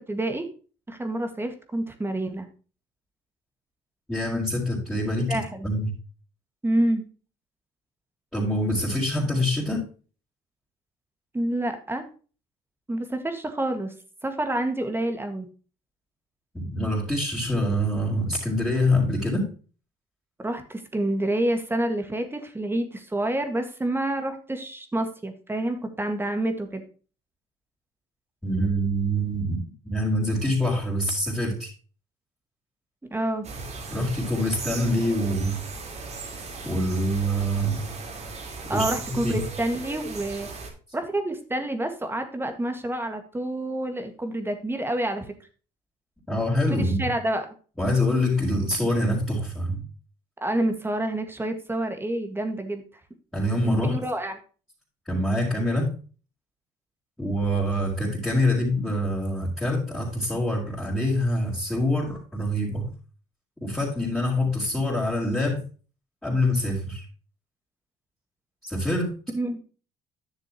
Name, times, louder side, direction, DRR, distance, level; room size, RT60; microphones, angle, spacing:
voice 1, 0.1-0.5 0.9-2.5 5.3-5.7 6.6-7.0 11.3-12.1 12.9-13.9 14.2-15.5 20.4-26.8 33.1-33.5 38.7-40.5 40.9-45.3 46.7-47.5 50.4-52.8 53.6-54.4 69.3-69.6, right 1 dB, 15° right, 7 dB, 1.8 m, -28 dB
voice 2, 4.1-5.4 5.6-5.9 8.3-9.8 16.5-19.4 28.4-31.7 33.9-35.6 36.6-37.8 38.7-39.4 46.3-47.1 47.8-49.8 53.3-54.0 55.1-55.9 57.2-62.9 63.6-65.6 66.2-67.0 68.6-69.1, left 1 dB, 5° left, -8 dB, 4.2 m, -25 dB
sound 1, 33.4-40.7, right 4 dB, 50° right, 2.8 m, -37 dB
10.5 x 6.8 x 3.0 m, 0.37 s
supercardioid pair, 80°, 15 cm